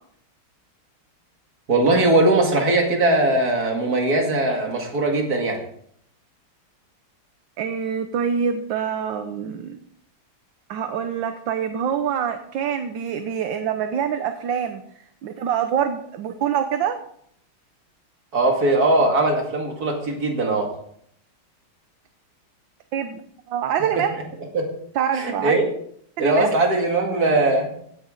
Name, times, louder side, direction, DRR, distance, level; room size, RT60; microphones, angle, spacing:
voice 1, 1.7-5.6 18.3-20.7 24.1-24.2 24.5-24.7 25.1-25.7 26.2-27.7, right 2 dB, 45° right, 2 dB, 2.7 m, -20 dB
voice 2, 7.6-9.8 10.7-14.8 15.2-17.0 22.9-23.2 23.5-24.2 24.9-25.6 26.2-26.5, right 8 dB, 70° right, 8 dB, 1.5 m, -25 dB
16.5 x 9.7 x 3.8 m, 0.67 s
omnidirectional pair, 2.3 m